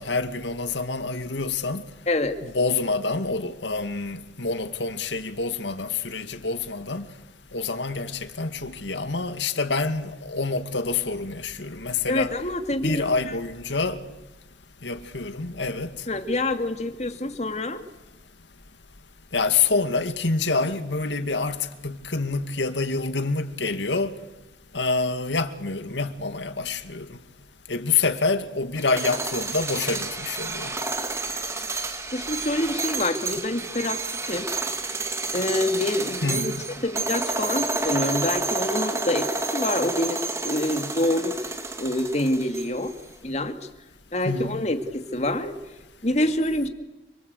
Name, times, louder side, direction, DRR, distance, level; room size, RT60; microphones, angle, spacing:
voice 1, 0.0-1.8 2.4-7.1 7.5-12.3 12.8-14.0 14.8-15.9 19.3-24.2 24.7-27.2 27.7-30.8 36.2-36.6 44.2-44.6, left 4 dB, 85° left, 2.1 m, -27 dB
voice 2, 2.1-2.4 12.1-13.3 16.1-17.8 32.1-34.0 34.3-34.5 35.3-36.5 36.8-41.4 41.8-42.9 43.2-43.6 44.1-45.6 46.0-46.7, left 1 dB, 40° left, 2.4 m, -26 dB
sound 1, 28.8-42.9, right 3 dB, 15° right, 1.9 m, -30 dB
29.5 x 24.5 x 8.3 m
head